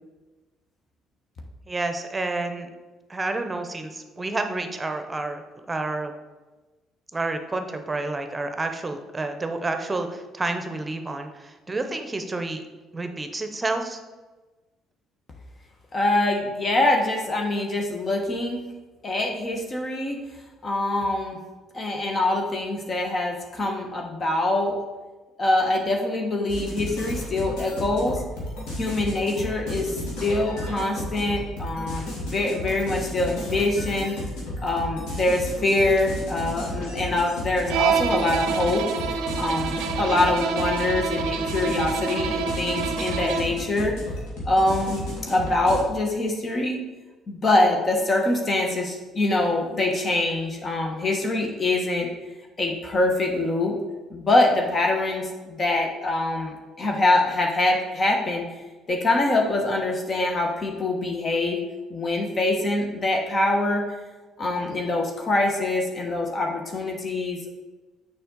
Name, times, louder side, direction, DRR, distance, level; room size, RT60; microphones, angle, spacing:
voice 1, 1.7-2.7 3.1-5.4 5.7-6.1 7.1-12.6 12.9-14.0, right 2 dB, 25° right, 7 dB, 0.9 m, -29 dB
voice 2, 15.9-18.7 19.0-20.2 20.6-21.4 21.7-24.9 25.4-28.2 28.8-34.2 34.6-38.9 39.4-43.9 44.4-46.8 47.3-52.1 52.6-53.8 54.1-58.4 58.9-61.6 61.9-63.8 64.4-67.5, left 2 dB, 40° left, 1 dB, 1.3 m, -24 dB
sound 1, 26.5-45.8, left 1 dB, 75° left, 2.1 m, -33 dB
Bowed string instrument, 37.7-43.6, right 7 dB, 75° right, 0.5 m, -27 dB
6.7 x 5.2 x 3.9 m, 1.2 s
hypercardioid pair, 60°, 0 cm